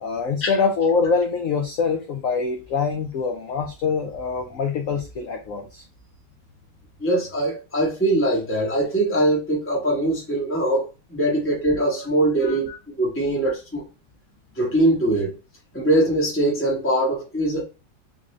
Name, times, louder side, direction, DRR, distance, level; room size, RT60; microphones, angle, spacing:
voice 1, 0.0-5.8 12.4-12.8, left 5 dB, 75° left, 0.7 m, -24 dB
voice 2, 7.0-12.7 13.0-13.8 14.5-15.4 15.7-17.6, right 1 dB, 10° left, 0.7 m, -22 dB
3.7 x 2.6 x 3.1 m
omnidirectional pair, 2.0 m